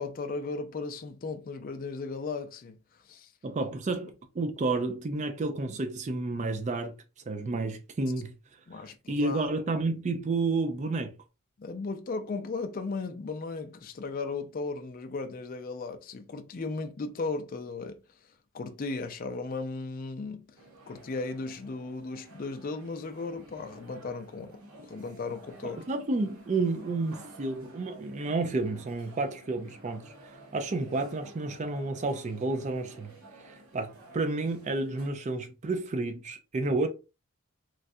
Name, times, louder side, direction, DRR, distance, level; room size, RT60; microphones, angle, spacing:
voice 1, 0.0-2.8 3.0-3.3 8.7-9.5 11.6-18.0 18.5-20.6 20.9-24.6 24.9-25.8, left 3 dB, 40° left, 0.4 m, -36 dB
voice 2, 3.4-6.9 7.3-8.3 9.1-11.1 25.6-33.1 33.4-36.9, right 3 dB, 30° right, 0.3 m, -31 dB
sound 1, 20.6-35.1, right 1 dB, 65° right, 0.9 m, -52 dB
3.1 x 2.4 x 2.6 m
head